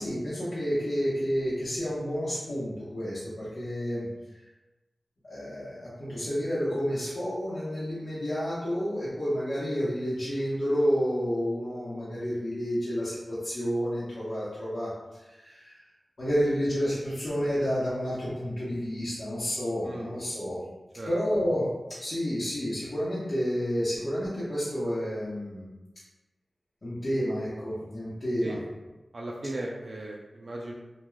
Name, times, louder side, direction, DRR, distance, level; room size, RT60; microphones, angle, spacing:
voice 1, 0.0-4.1 5.2-15.8 16.2-20.6 21.1-21.7 22.0-25.6 26.8-28.6, equal, 55° left, -12 dB, 0.9 m, -30 dB
voice 2, 29.1-30.7, right 1 dB, 55° right, -2 dB, 0.3 m, -37 dB
3.0 x 2.2 x 2.3 m, 1.1 s
wide cardioid pair, 65°, 0 cm